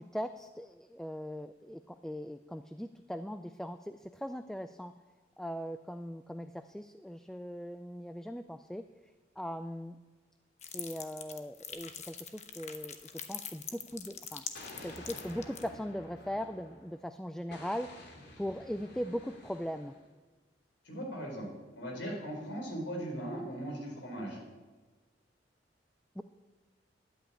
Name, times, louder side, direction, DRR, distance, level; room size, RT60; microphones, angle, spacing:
voice 1, 0.0-4.9 5.4-8.8 9.4-10.0 10.7-14.4 14.8-19.9 26.2-26.3, equal, 5° left, 10 dB, 0.3 m, -40 dB
sound 1, 10.6-15.7, left 8 dB, 40° left, 1.0 m, -43 dB
Explosion, 14.5-17.0 17.5-20.1, left 1 dB, 65° left, 2.7 m, -50 dB
voice 2, 20.8-21.5 21.8-24.4, right 1 dB, 80° left, 0 dB, 4.4 m, -38 dB
11.0 x 9.0 x 8.6 m, 1.3 s
head